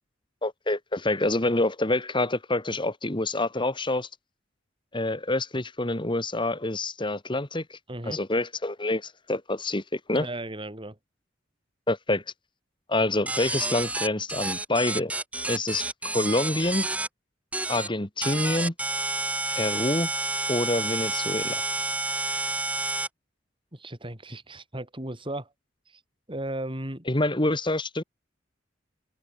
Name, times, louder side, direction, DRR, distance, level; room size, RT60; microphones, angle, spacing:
voice 1, 0.4-4.1 4.9-10.3 11.9-12.2 12.9-15.1 15.5-15.9 16.1-16.9 17.7-18.7 19.6-20.1 20.5-21.6 27.1-28.0, left 2 dB, 25° left, 2.1 m, -27 dB
voice 2, 7.9-8.2 10.1-11.0 23.7-25.5 26.3-27.1, right 1 dB, 25° right, 5.0 m, -35 dB
sound 1, 13.3-17.1 17.5-17.9 18.2-23.1, right 2 dB, 5° right, 0.8 m, -29 dB
head